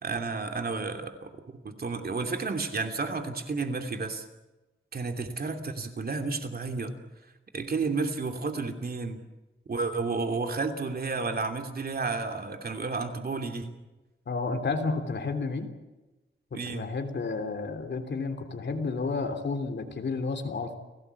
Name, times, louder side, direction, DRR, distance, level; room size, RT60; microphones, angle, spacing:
voice 1, 0.0-4.2 4.9-6.9 7.5-9.2 9.7-13.7 16.5-16.9, right 4 dB, 50° right, 5 dB, 2.9 m, -32 dB
voice 2, 14.3-15.7 16.7-20.7, left 4 dB, 60° left, 6 dB, 3.3 m, -31 dB
30.0 x 18.0 x 8.4 m, 1.1 s
wide cardioid pair, 165°, 21 cm